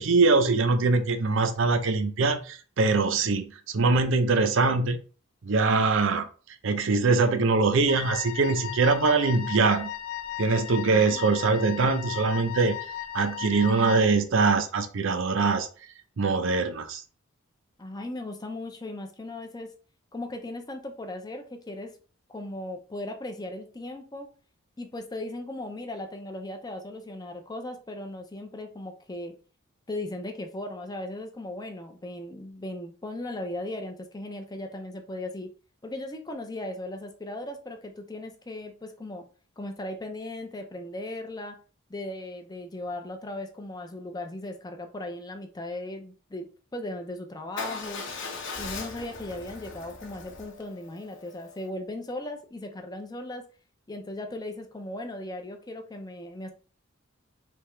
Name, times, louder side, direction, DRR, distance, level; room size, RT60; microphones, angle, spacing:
voice 1, 0.0-5.0 5.4-6.3 6.6-9.9 10.4-12.8 13.1-15.7 16.2-17.0, right 4 dB, 65° right, 0.6 m, -23 dB
Wind instrument woodwind instrument, 7.9-14.2, left 11 dB, 80° left, 0.5 m, -36 dB
voice 2, 10.8-11.3 17.8-19.7 20.1-22.0 22.3-24.3 24.8-29.3 29.9-35.5 35.8-39.2 39.6-41.6 41.9-46.5 46.7-48.0 48.6-53.4 53.9-56.5, left 1 dB, 20° left, 0.5 m, -37 dB
Motorcycle / Engine starting / Idling, 47.6-51.7, left 4 dB, 60° left, 0.8 m, -39 dB
3.4 x 2.9 x 4.3 m
head